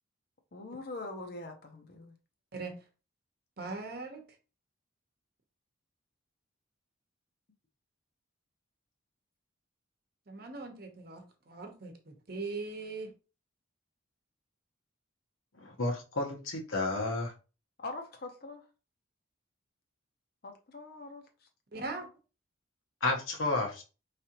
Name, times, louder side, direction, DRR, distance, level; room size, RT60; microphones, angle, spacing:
voice 1, 0.5-2.1 17.8-18.6 20.4-21.2 21.7-22.0, left 2 dB, 50° left, 4 dB, 0.7 m, -43 dB
voice 2, 3.6-4.2 10.3-13.1 21.7-22.1, right 3 dB, 50° right, 5 dB, 0.9 m, -40 dB
voice 3, 15.6-17.3 23.0-23.8, left 2 dB, 80° left, 2 dB, 1.1 m, -31 dB
4.8 x 3.2 x 2.9 m, 0.32 s
head